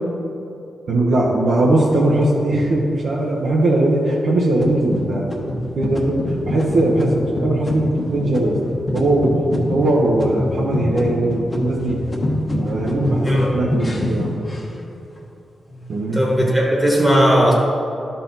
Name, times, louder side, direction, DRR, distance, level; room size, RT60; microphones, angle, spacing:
voice 1, 0.9-5.3 5.8-8.6 8.9-9.3 9.7-12.0 12.6-14.4 15.9-16.2, right 1 dB, 75° right, -4 dB, 0.9 m, -19 dB
sound 1, 1.8-2.6 3.2-3.3 3.8-4.1 4.6-9.9 10.2-10.7 10.9-15.3 15.7-16.3, left 1 dB, 25° left, 1.1 m, -34 dB
sound 2, 4.6-5.2 5.5-14.3, left 1 dB, 50° left, 1.2 m, -25 dB
voice 2, 16.1-17.5, equal, 10° right, -3 dB, 1.2 m, -16 dB
12.0 x 4.1 x 4.0 m, 2.8 s
wide cardioid pair, 105°, 0 cm